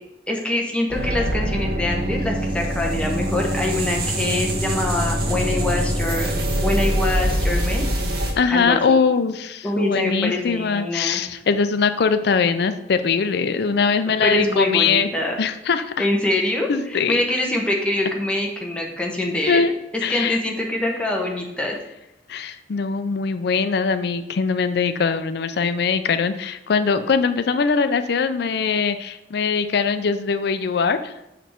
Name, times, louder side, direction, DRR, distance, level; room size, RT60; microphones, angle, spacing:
voice 1, 0.3-6.3 6.6-7.9 8.5-9.0 9.6-11.2 13.7-13.8 14.2-15.4 16.0-19.6 20.1-21.8, left 1 dB, 5° left, -1 dB, 1.1 m, -24 dB
sound 1, 0.9-8.3, equal, 60° right, 1.4 m, -23 dB
voice 2, 8.4-15.1 15.4-16.1 16.7-17.2 19.5-19.7 20.0-20.4 22.3-31.1, left 5 dB, 65° left, 11 dB, 0.4 m, -21 dB
6.5 x 5.1 x 4.4 m, 0.90 s
head